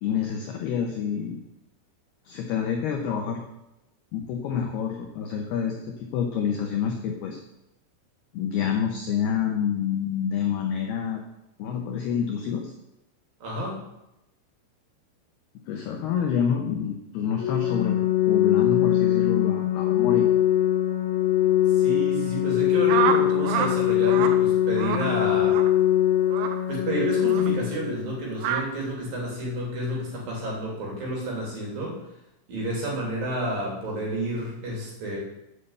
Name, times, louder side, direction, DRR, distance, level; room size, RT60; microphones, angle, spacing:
voice 1, 0.0-1.4 2.3-3.4 4.1-7.4 8.3-11.2 11.6-12.7 15.7-18.0 18.3-20.3, left 8 dB, 80° left, 2 dB, 2.3 m, -27 dB
voice 2, 13.4-13.8 21.8-25.6 26.7-32.0 32.5-35.2, right 1 dB, 45° right, -3 dB, 4.4 m, -30 dB
Organ, 17.4-28.4, left 12 dB, 60° left, 3.0 m, -22 dB
sound 1, 22.9-23.7 24.0-24.4 24.8-25.1 25.5-25.7 26.3-26.6 27.3-27.5 28.4-28.6, right 9 dB, 90° right, 3.7 m, -26 dB
8.5 x 7.8 x 8.1 m, 0.90 s
omnidirectional pair, 6.0 m